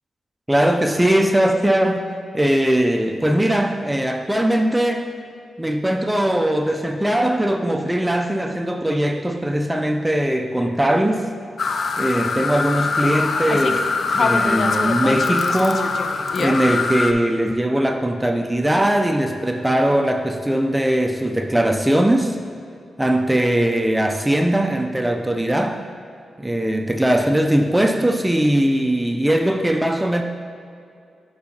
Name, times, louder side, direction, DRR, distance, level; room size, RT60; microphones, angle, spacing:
voice 1, 0.5-5.1 5.6-11.3 12.0-13.9 14.2-15.9 16.4-22.4 23.0-25.8 26.4-30.2, right 1 dB, 10° right, 5 dB, 0.4 m, -20 dB
sound 1, 11.6-17.1, left 4 dB, 60° left, 0.4 m, -22 dB
8.3 x 4.7 x 2.8 m, 2.4 s
cardioid pair, 55°, 0 cm